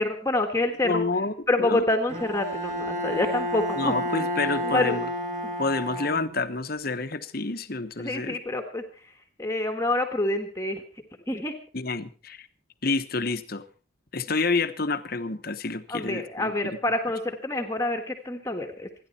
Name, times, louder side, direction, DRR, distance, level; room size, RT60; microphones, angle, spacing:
voice 1, 0.0-1.0 1.5-3.9 4.6-5.0 8.0-8.8 9.4-10.8 11.3-11.5 15.9-18.9, left 2 dB, 15° left, 1.5 m, -27 dB
voice 2, 0.8-1.8 3.8-5.1 5.6-8.4 11.7-12.5 12.8-13.6 14.1-16.8, left 3 dB, 45° left, 1.1 m, -29 dB
Bowed string instrument, 2.1-6.6, equal, 35° right, 2.8 m, -31 dB
27.0 x 10.5 x 4.3 m
head